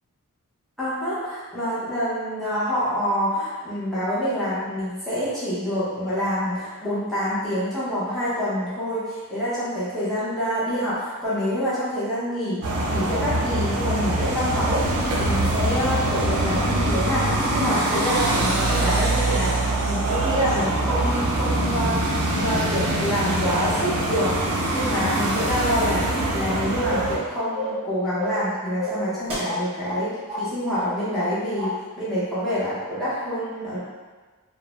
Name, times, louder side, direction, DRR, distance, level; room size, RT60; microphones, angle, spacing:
voice 1, 0.8-12.6 12.9-14.8 15.1-17.2 17.5-30.1 30.4-31.7 32.0-33.8, equal, ahead, -12 dB, 0.7 m, -26 dB
sound 1, 12.6-27.2, right 1 dB, 80° right, 0.5 m, -24 dB
sound 2, 26.9-27.2 27.5-27.9 28.2-28.5 28.8-30.0 30.3-30.5 30.7-31.3 31.6-31.7, left 1 dB, 25° right, 0.9 m, -29 dB
2.4 x 2.1 x 3.0 m, 1.3 s
head